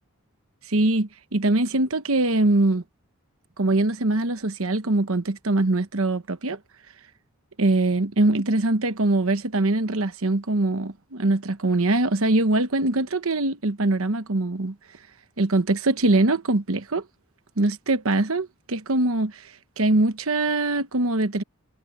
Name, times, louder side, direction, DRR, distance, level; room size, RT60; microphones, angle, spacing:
voice 1, 0.7-2.8 3.6-6.6 7.6-14.7 15.4-17.0 17.6-19.5 19.8-21.4, right 2 dB, 70° right, 1.1 m, -22 dB
head